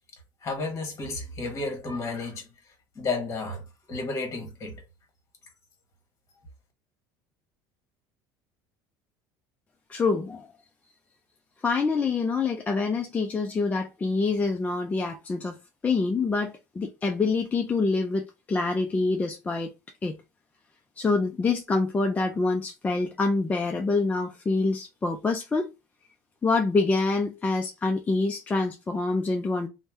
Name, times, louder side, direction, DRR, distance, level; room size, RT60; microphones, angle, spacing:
voice 1, 0.4-2.5 2.9-3.6 3.9-4.8, left 3 dB, 35° left, 1.2 m, -32 dB
voice 2, 9.9-10.5 11.6-15.6 15.8-19.7 20.0-20.2 21.0-25.7 26.4-29.7, left 3 dB, 15° left, 0.4 m, -26 dB
2.8 x 2.1 x 3.4 m
cardioid pair, 125°, 9 cm